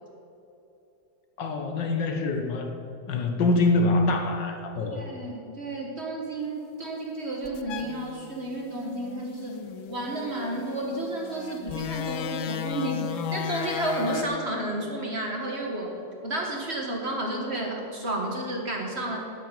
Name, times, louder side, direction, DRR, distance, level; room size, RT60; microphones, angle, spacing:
voice 1, 1.4-2.7 3.1-5.0, left 2 dB, 70° left, 4 dB, 1.8 m, -25 dB
voice 2, 4.9-9.6 9.9-15.9 16.2-19.2, right 1 dB, 35° right, 0 dB, 1.7 m, -31 dB
sound 1, 7.4-14.2, left 9 dB, 85° left, 1.5 m, -35 dB
9.0 x 8.8 x 9.0 m, 2.8 s
omnidirectional pair, 2.1 m